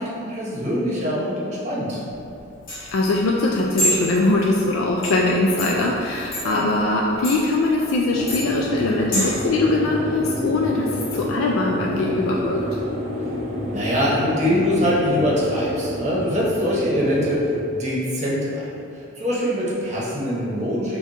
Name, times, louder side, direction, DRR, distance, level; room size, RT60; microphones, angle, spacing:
voice 1, 0.0-2.0 6.4-6.6 13.6-18.7 18.9-21.0, equal, 35° right, -7 dB, 0.8 m, -23 dB
sound 1, 2.1-9.5, equal, 45° left, 1.4 m, -30 dB
voice 2, 2.9-12.8, left 2 dB, 85° left, -2 dB, 0.3 m, -21 dB
sound 2, 8.1-17.5, equal, 75° right, 0.7 m, -29 dB
4.2 x 2.3 x 3.7 m, 2.7 s
head